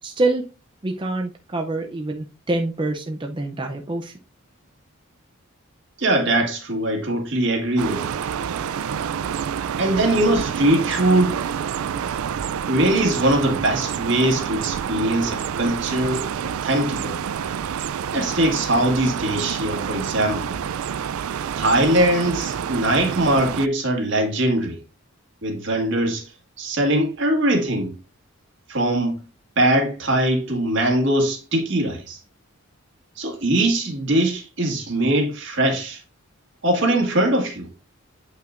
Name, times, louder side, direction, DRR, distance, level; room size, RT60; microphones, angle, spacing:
voice 1, 0.0-0.4 0.8-4.1, right 2 dB, 25° right, 0.5 m, -25 dB
voice 2, 6.0-8.1 9.8-11.4 12.7-16.2 16.6-17.2 18.1-20.6 21.6-24.8 25.4-26.3 26.6-27.9 28.7-29.2 29.6-32.2 33.2-36.0 36.6-37.7, right 1 dB, 55° right, 1.8 m, -21 dB
sound 1, 7.8-23.7, right 8 dB, 80° right, 0.3 m, -28 dB
8.3 x 5.6 x 2.5 m
head